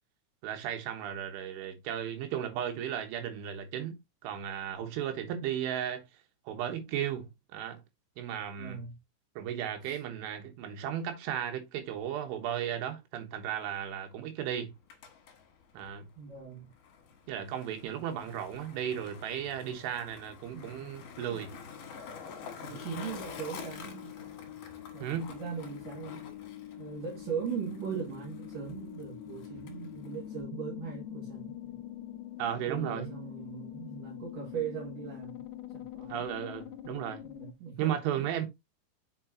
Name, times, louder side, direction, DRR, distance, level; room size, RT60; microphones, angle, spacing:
voice 1, 0.4-6.0 6.5-7.8 8.2-8.8 9.4-14.7 15.7-16.1 17.3-21.6 25.0-25.3 32.4-33.1 36.1-37.2 37.8-38.5, right 10 dB, 80° right, 3.7 m, -35 dB
voice 2, 8.6-9.0 9.8-10.0 16.2-16.7 20.5-20.9 21.3-21.5 22.6-24.2 24.9-26.2 26.8-31.8 32.7-35.5 35.7-36.2 37.2-38.5, right 7 dB, 50° right, 3.5 m, -40 dB
Skateboard, 14.7-30.4, left 6 dB, 60° left, 2.4 m, -49 dB
sound 1, 19.9-21.1 21.5-37.5, left 12 dB, 85° left, 2.2 m, -45 dB
7.6 x 5.7 x 2.9 m
omnidirectional pair, 5.5 m